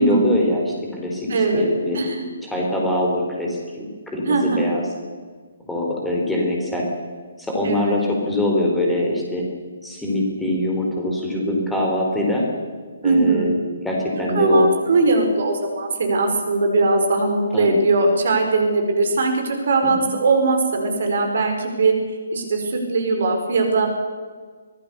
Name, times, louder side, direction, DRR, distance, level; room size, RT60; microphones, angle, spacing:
voice 1, 0.0-2.0 2.4-3.6 4.1-4.8 5.7-6.9 7.4-9.5 9.8-12.5 13.0-14.7 17.5-17.8 19.8-20.1, left 1 dB, 5° left, -2 dB, 4.3 m, -23 dB
voice 2, 1.3-2.2 4.3-4.6 7.6-8.0 13.0-13.5 14.3-21.9 22.3-23.9, right 3 dB, 50° right, 4 dB, 5.0 m, -20 dB
24.5 x 18.5 x 6.8 m, 1.5 s
figure-of-eight pair, 135°, 0 cm